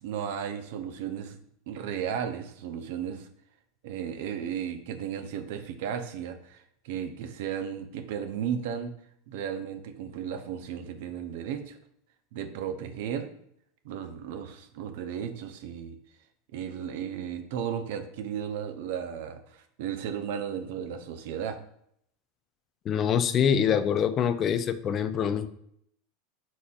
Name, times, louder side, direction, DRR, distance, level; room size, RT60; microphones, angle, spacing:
voice 1, 0.0-1.4 1.7-3.3 3.8-8.9 9.3-11.8 12.3-13.3 13.8-16.0 16.5-21.6, right 8 dB, 65° right, 8 dB, 0.5 m, -34 dB
voice 2, 22.9-25.5, left 8 dB, 40° left, 11 dB, 0.3 m, -25 dB
4.1 x 3.8 x 2.3 m, 0.70 s
hypercardioid pair, 90°, 0 cm